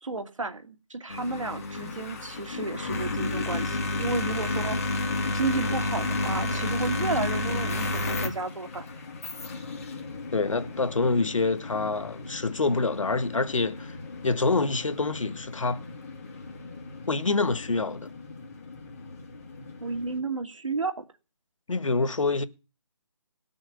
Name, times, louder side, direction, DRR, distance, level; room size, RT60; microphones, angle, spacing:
voice 1, 0.0-8.9 19.8-21.0, right 3 dB, 85° right, 2.7 m, -32 dB
sound 1, 1.1-20.2, left 2 dB, 30° left, 2.2 m, -33 dB
voice 2, 10.3-14.0 14.2-15.8 17.1-18.1 21.7-22.4, left 3 dB, 85° left, 1.5 m, -26 dB
19.0 x 6.4 x 9.3 m
hypercardioid pair, 175°, 16 cm